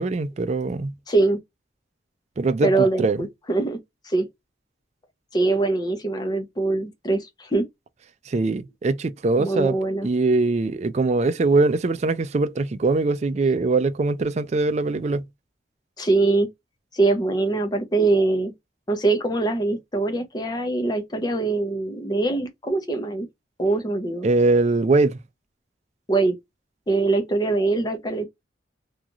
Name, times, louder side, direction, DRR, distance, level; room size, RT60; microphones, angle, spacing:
voice 1, 0.0-0.9 2.4-3.3 8.3-15.3 24.2-25.2, right 3 dB, 35° right, 0.3 m, -22 dB
voice 2, 1.1-1.4 2.6-4.3 5.3-7.7 9.4-10.1 16.0-16.5 16.9-18.5 18.9-23.3 23.6-24.3 26.1-26.3 26.9-28.3, right 3 dB, 20° left, 0.6 m, -23 dB
3.0 x 2.4 x 2.5 m
head